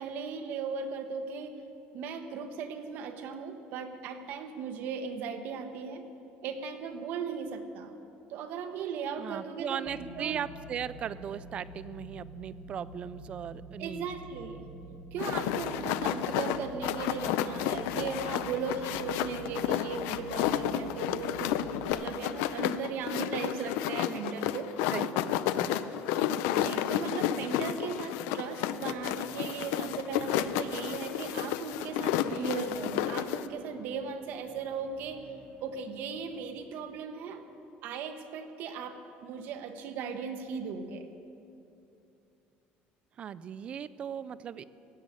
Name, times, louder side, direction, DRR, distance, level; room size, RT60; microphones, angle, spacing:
voice 1, 0.0-1.5 1.9-6.0 6.4-7.9 8.3-10.4 13.8-14.7 15.1-21.6 21.9-24.9 26.5-35.3 35.6-37.4 37.8-41.1, right 5 dB, 55° right, 6 dB, 1.1 m, -37 dB
voice 2, 9.2-14.1 24.9-25.1 25.6-25.7 43.2-44.6, right 8 dB, 30° right, 16 dB, 0.4 m, -37 dB
sound 1, 9.9-21.9, right 1 dB, 15° left, 1.3 m, -47 dB
sound 2, 15.2-33.5, left 11 dB, 90° left, 0.5 m, -31 dB
sound 3, 28.6-37.1, left 1 dB, 70° left, 4.1 m, -57 dB
16.5 x 7.2 x 9.7 m, 2.7 s
cardioid pair, 175°, 4 cm